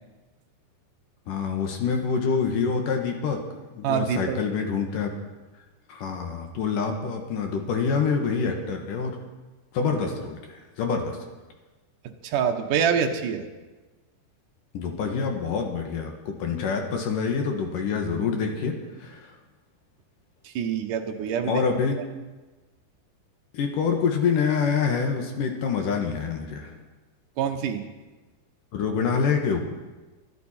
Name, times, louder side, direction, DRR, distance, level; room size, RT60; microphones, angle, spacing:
voice 1, 1.3-3.4 3.7-5.1 5.9-9.2 9.7-11.2 14.7-19.3 21.4-22.0 23.5-26.7 28.7-29.6, left 5 dB, 60° left, 3 dB, 2.7 m, -26 dB
voice 2, 3.8-4.4 12.2-13.5 20.6-21.6 27.4-27.8, right 7 dB, 65° right, 4 dB, 2.2 m, -25 dB
23.5 x 11.5 x 4.4 m, 1.2 s
omnidirectional pair, 4.8 m